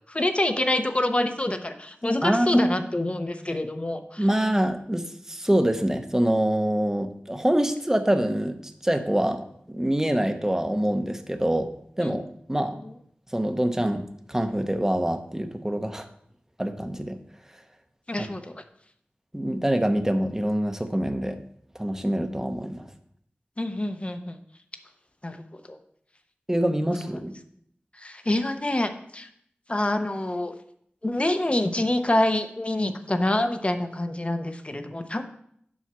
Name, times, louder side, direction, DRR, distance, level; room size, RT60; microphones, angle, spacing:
voice 1, 0.1-4.2 12.0-12.2 12.8-12.9 18.1-18.6 23.6-24.4 25.2-25.8 27.9-29.3 29.7-30.5 31.0-35.2, left 1 dB, 30° left, 7 dB, 0.9 m, -26 dB
voice 2, 2.2-2.7 4.2-11.7 12.0-12.2 12.5-12.8 13.3-16.1 16.6-17.2 18.2-18.3 19.3-21.4 21.7-22.9 26.5-27.3, right 1 dB, 15° right, 7 dB, 0.9 m, -25 dB
7.3 x 5.6 x 6.1 m, 0.70 s
wide cardioid pair, 60°, 4 cm